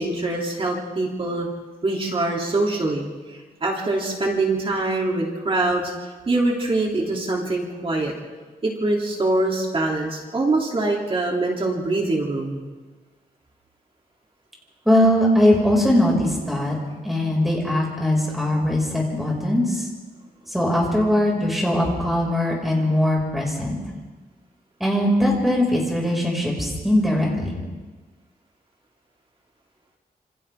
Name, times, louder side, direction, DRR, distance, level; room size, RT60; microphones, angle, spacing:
voice 1, 0.0-1.5 1.8-5.9 6.3-8.1 8.6-12.6, right 2 dB, 35° right, -2 dB, 3.3 m, -24 dB
voice 2, 14.8-16.8 17.0-19.8 20.5-23.8 24.8-27.6, left 1 dB, ahead, -2 dB, 6.2 m, -20 dB
28.0 x 28.0 x 3.8 m, 1.3 s
wide cardioid pair, 160°, 16 cm